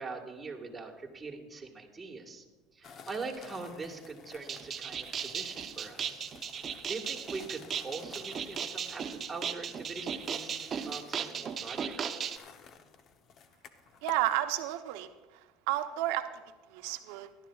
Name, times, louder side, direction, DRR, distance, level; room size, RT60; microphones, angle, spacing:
voice 1, 0.0-2.4 2.7-6.2 6.6-10.5 10.8-12.1, right 3 dB, 15° right, -1 dB, 1.5 m, -42 dB
sound 1, 2.8-14.4, left 6 dB, 40° left, 0.7 m, -53 dB
sound 2, 4.4-12.4, right 7 dB, 35° right, 0.7 m, -37 dB
voice 2, 14.0-15.1 15.7-16.3 16.7-17.3, right 14 dB, 75° right, 8 dB, 0.8 m, -31 dB
18.0 x 11.5 x 2.4 m, 1.2 s
supercardioid pair, 115°, 0 cm